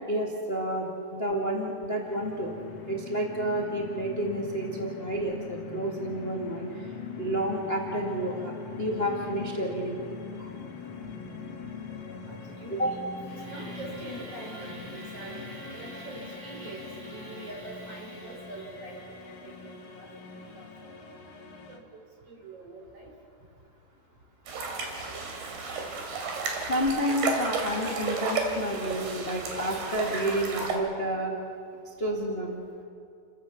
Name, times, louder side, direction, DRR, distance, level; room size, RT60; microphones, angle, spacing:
voice 1, 0.0-2.5 2.9-6.9 7.2-8.5 8.8-10.0 12.8-13.0 26.7-31.3 31.8-32.8, right 1 dB, 70° left, -1 dB, 0.5 m, -30 dB
sound 1, 2.0-21.8, left 5 dB, 50° left, 2.0 m, -42 dB
voice 2, 11.9-20.1 20.5-20.9 21.7-21.8 22.3-23.1 25.1-30.4, right 2 dB, 35° right, 0 dB, 4.2 m, -45 dB
sound 2, 24.5-30.7, right 4 dB, 60° right, 4.5 m, -32 dB
30.0 x 15.5 x 7.1 m, 2.4 s
omnidirectional pair, 5.2 m